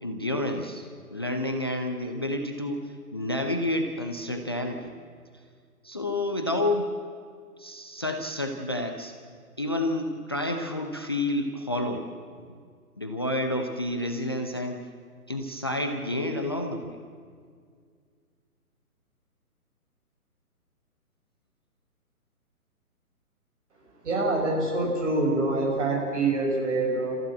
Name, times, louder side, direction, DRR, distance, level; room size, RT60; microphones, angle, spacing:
voice 1, 0.0-4.9 5.8-6.9 7.6-9.1 9.6-12.1 13.0-14.9 15.3-17.0, left 1 dB, 15° left, 4 dB, 0.5 m, -29 dB
voice 2, 24.0-27.2, right 2 dB, 50° right, 0 dB, 6.1 m, -25 dB
29.5 x 15.0 x 7.6 m, 2.1 s
figure-of-eight pair, 140°, 46 cm